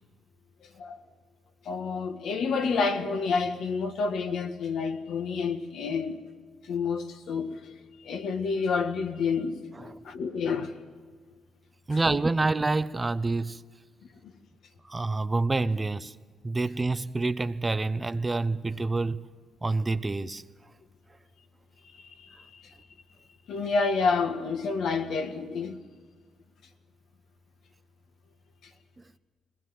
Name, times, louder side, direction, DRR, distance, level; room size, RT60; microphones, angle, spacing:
voice 1, 1.6-6.2 6.7-7.6 8.0-9.5 9.8-10.8 22.2-22.4 23.5-25.8, left 5 dB, 70° left, 1.6 m, -29 dB
voice 2, 11.9-13.6 14.8-16.1 16.4-19.3 19.6-20.4, right 3 dB, 20° right, 0.7 m, -27 dB
21.0 x 19.0 x 7.7 m
cardioid pair, 90°, 0 cm